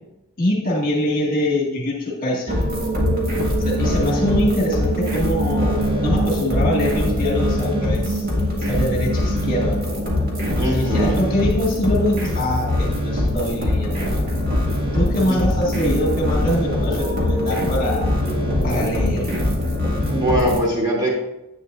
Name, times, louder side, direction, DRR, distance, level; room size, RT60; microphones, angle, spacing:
voice 1, 0.4-2.6 3.6-8.3 8.7-9.8 10.7-14.2 14.9-18.1 18.6-19.3, left 1 dB, 45° left, -2 dB, 1.8 m, -23 dB
sound 1, 2.5-20.6, left 1 dB, 50° right, 1.8 m, -22 dB
voice 2, 10.6-11.3 15.3-15.4 20.1-21.1, right 1 dB, 20° right, -4 dB, 2.6 m, -21 dB
9.9 x 8.4 x 2.5 m, 0.92 s
head